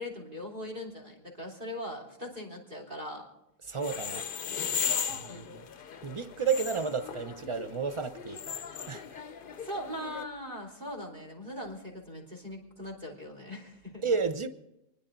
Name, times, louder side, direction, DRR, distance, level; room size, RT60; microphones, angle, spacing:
voice 1, 0.0-3.3 5.3-5.5 9.6-14.0, left 1 dB, 50° right, 3.7 m, -40 dB
sound 1, 3.7-10.2, left 7 dB, 55° left, 0.8 m, -37 dB
voice 2, 3.7-4.3 5.1-5.6 6.0-8.6 8.9-9.0 14.0-14.5, right 5 dB, 30° right, 0.8 m, -32 dB
29.0 x 10.0 x 3.9 m
omnidirectional pair, 1.1 m